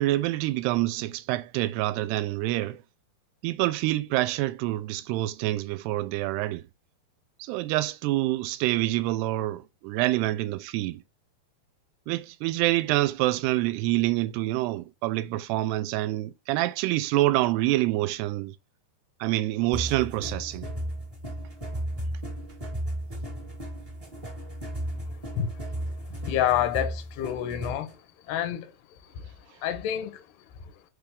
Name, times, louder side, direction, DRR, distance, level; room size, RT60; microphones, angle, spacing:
voice 1, 0.0-2.8 3.4-6.6 7.4-11.0 12.1-18.6 19.2-20.7 21.2-21.3, right 17 dB, 85° right, 2.5 m, -26 dB
sound 1, 19.7-27.9, right 1 dB, 25° right, 0.7 m, -35 dB
voice 2, 26.1-28.0 28.3-28.7 29.1-29.2 29.6-30.2 30.6-30.7, left 11 dB, 80° left, 2.9 m, -28 dB
6.0 x 4.8 x 3.5 m
omnidirectional pair, 4.8 m